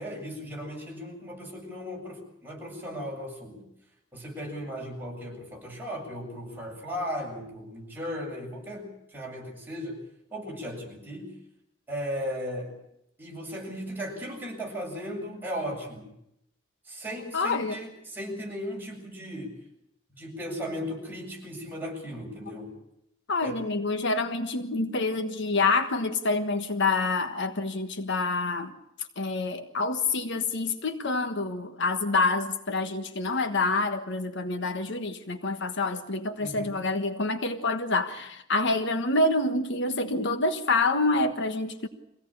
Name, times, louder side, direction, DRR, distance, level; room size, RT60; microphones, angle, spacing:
voice 1, 0.0-3.7 4.1-10.0 10.3-11.4 11.9-12.7 13.2-16.1 16.9-19.5 20.2-22.7 23.4-23.6 36.4-36.7, equal, 10° right, -2 dB, 7.6 m, -36 dB
voice 2, 17.3-17.8 22.5-22.6 23.3-28.7 29.2-41.9, left 3 dB, 60° left, 8 dB, 1.4 m, -27 dB
25.0 x 17.0 x 8.8 m, 0.79 s
head